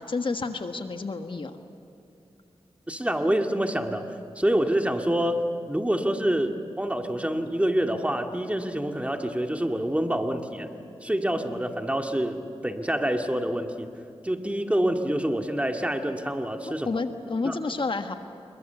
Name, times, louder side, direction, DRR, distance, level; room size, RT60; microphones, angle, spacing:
voice 1, 0.0-1.6 16.7-18.1, left 3 dB, 50° left, 6 dB, 1.6 m, -30 dB
voice 2, 2.9-10.7 11.0-13.9 14.2-17.0 17.4-17.6, right 1 dB, 10° right, 4 dB, 2.2 m, -27 dB
27.5 x 23.0 x 7.1 m, 2.7 s
cardioid pair, 50°, 11 cm